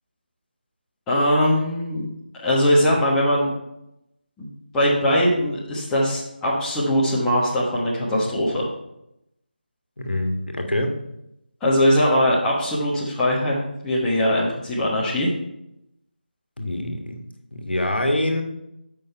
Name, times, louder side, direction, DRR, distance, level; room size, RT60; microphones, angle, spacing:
voice 1, 1.1-2.1 2.4-3.5 4.4-4.5 4.7-8.7 11.6-15.3, equal, 5° left, -7 dB, 1.2 m, -21 dB
voice 2, 10.0-10.9 16.6-17.2 17.5-18.4, left 1 dB, 85° left, 4 dB, 1.4 m, -25 dB
7.4 x 5.8 x 4.5 m, 0.84 s
figure-of-eight pair, 160°, 5 cm